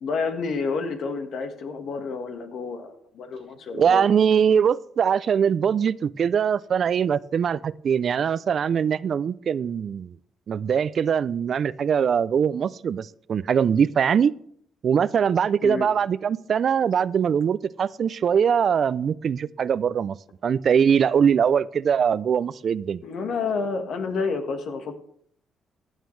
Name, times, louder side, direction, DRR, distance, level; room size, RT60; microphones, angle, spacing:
voice 1, 0.0-4.0 15.6-15.9 23.0-24.9, left 4 dB, 70° left, 1.5 m, -29 dB
voice 2, 3.7-10.2 10.5-14.3 14.8-20.2 20.4-23.0, right 7 dB, 55° right, 0.4 m, -22 dB
15.5 x 9.0 x 3.2 m
cardioid pair, 90°, 0 cm